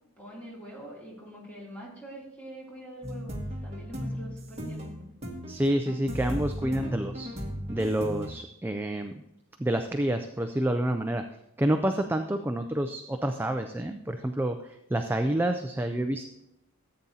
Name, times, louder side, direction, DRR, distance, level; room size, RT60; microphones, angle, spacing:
voice 1, 0.2-4.9, equal, 5° left, -5 dB, 2.8 m, -44 dB
sound 1, 3.0-8.3, equal, 30° right, 1.7 m, -36 dB
voice 2, 5.5-7.3 7.7-9.1 9.6-11.2 11.6-16.3, right 1 dB, 10° right, 7 dB, 0.3 m, -28 dB
14.5 x 8.6 x 2.8 m, 0.88 s
head